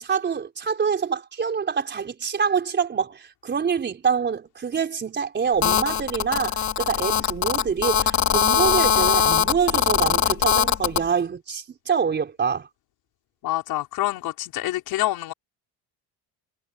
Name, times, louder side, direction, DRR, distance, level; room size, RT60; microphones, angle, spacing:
voice 1, 0.0-12.7, right 6 dB, 30° right, 4.2 m, -26 dB
Telephone, 5.6-11.0, left 9 dB, 45° left, 3.5 m, -21 dB
voice 2, 13.4-15.3, left 16 dB, 70° left, 4.8 m, -26 dB
cardioid pair, 145°, 37 cm